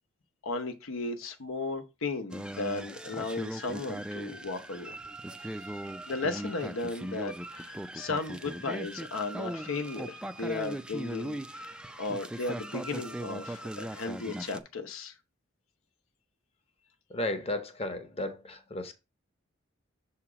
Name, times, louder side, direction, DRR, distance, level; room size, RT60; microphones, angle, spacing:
voice 1, 0.4-4.9 5.4-5.5 6.1-15.1, left 3 dB, 90° left, 0.8 m, -35 dB
sound 1, 2.3-14.6, right 1 dB, 5° right, 0.3 m, -39 dB
voice 2, 17.1-18.9, left 1 dB, 30° left, 0.8 m, -34 dB
7.0 x 2.9 x 4.8 m
head